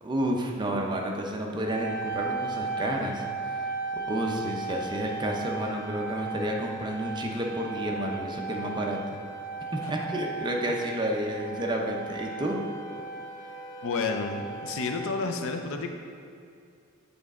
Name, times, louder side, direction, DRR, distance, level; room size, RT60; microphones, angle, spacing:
voice 1, 0.0-3.7 4.1-9.2 9.7-12.6, right 1 dB, 20° right, 1 dB, 0.6 m, -30 dB
sound 1, 1.6-15.2, right 4 dB, 40° left, 1.3 m, -36 dB
voice 2, 13.8-15.9, left 4 dB, 65° left, 5 dB, 0.5 m, -30 dB
7.7 x 4.1 x 3.6 m, 2.4 s
head